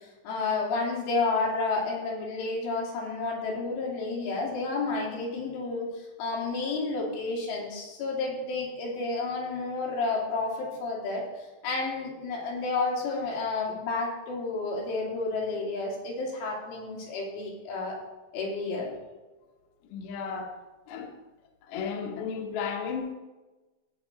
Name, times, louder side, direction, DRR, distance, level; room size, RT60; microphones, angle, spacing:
voice 1, 0.0-11.2 11.6-18.0 18.3-18.9, left 3 dB, 90° left, -3 dB, 5.3 m, -31 dB
voice 2, 19.9-20.5 20.9-21.1 21.7-23.1, left 6 dB, 65° left, 2 dB, 2.7 m, -34 dB
14.0 x 8.8 x 4.3 m, 1.2 s
omnidirectional pair, 5.4 m